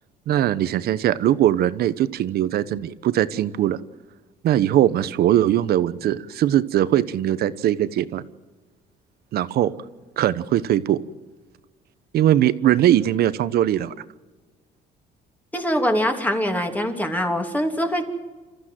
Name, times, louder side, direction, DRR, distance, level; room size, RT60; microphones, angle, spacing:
voice 1, 0.3-3.8 4.4-8.2 9.3-9.7 10.2-11.0 12.1-13.9, right 12 dB, 65° right, 14 dB, 1.1 m, -20 dB
voice 2, 15.5-18.0, equal, 10° left, 4 dB, 2.9 m, -23 dB
27.5 x 14.0 x 7.7 m, 1.3 s
cardioid pair, 110°, 17 cm